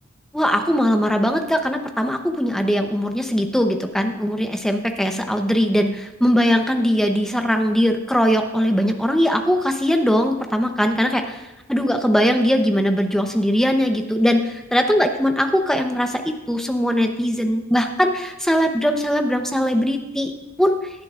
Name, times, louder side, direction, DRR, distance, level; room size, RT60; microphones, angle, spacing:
voice 1, 0.3-11.4 11.7-20.3 20.6-20.8, equal, ahead, 5 dB, 0.8 m, -20 dB
17.0 x 11.0 x 2.5 m, 1.1 s
head